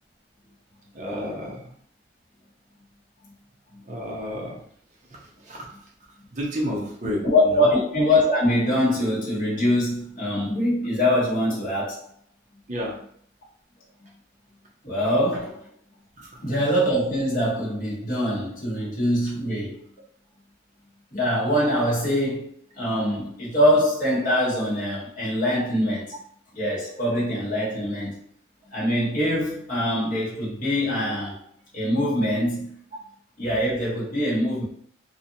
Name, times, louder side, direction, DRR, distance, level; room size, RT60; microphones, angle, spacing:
voice 1, 0.9-1.7 3.9-4.6 5.4-5.7 6.3-7.2 7.5-7.6 12.7-12.9 16.2-16.3, equal, 40° right, -3 dB, 0.6 m, -30 dB
voice 2, 7.2-12.0 14.8-15.6 16.4-19.8 21.1-22.5 22.8-26.1 26.5-28.2 28.7-31.4 31.7-32.8 33.4-34.6, left 1 dB, 40° left, -7 dB, 1.1 m, -23 dB
2.7 x 2.2 x 2.7 m, 0.63 s
head